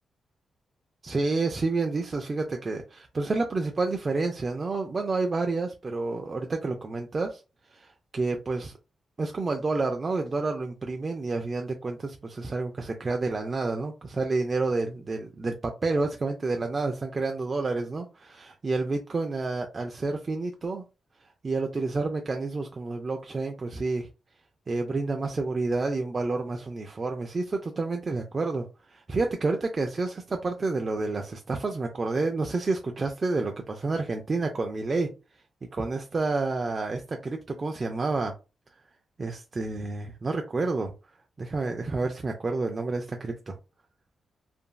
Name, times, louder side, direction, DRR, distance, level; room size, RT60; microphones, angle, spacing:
voice 1, 1.0-7.4 7.7-8.7 9.2-20.8 21.4-24.1 24.7-35.1 35.7-38.3 39.2-40.9 41.4-43.6, right 3 dB, 35° right, 0.4 m, -29 dB
2.9 x 2.5 x 2.2 m
cardioid pair, 90°, 0 cm